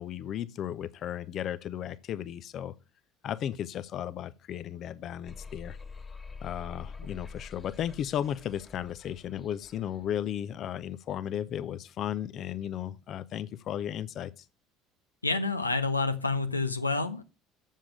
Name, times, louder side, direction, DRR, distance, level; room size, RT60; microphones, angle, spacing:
voice 1, 0.0-2.7 3.2-5.8 6.4-14.4, left 10 dB, 45° left, 0.6 m, -35 dB
sound 1, 5.2-10.4, left 4 dB, 20° left, 1.4 m, -46 dB
voice 2, 15.2-17.2, left 3 dB, 90° left, 0.6 m, -28 dB
7.4 x 7.1 x 6.3 m
figure-of-eight pair, 65°, 0 cm